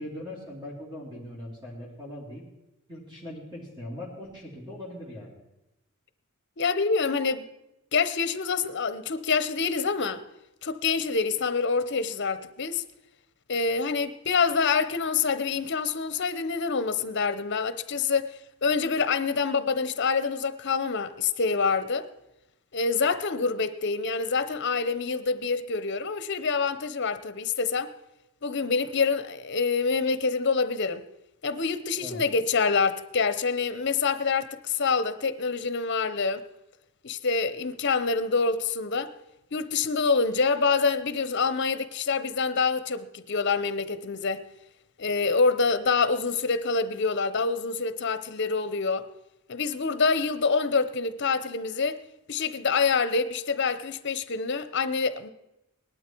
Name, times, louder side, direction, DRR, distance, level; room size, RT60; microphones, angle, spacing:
voice 1, 0.0-2.4 2.9-5.3 31.9-32.2, left 1 dB, 20° right, 3.2 m, -40 dB
voice 2, 6.6-7.5 7.9-10.2 10.6-12.8 13.5-18.3 18.6-22.1 22.7-27.9 28.4-31.0 31.4-36.4 37.0-39.1 39.5-44.4 45.0-49.1 49.5-52.0 52.3-55.3, left 4 dB, 55° left, 0.8 m, -26 dB
19.0 x 12.0 x 4.6 m
head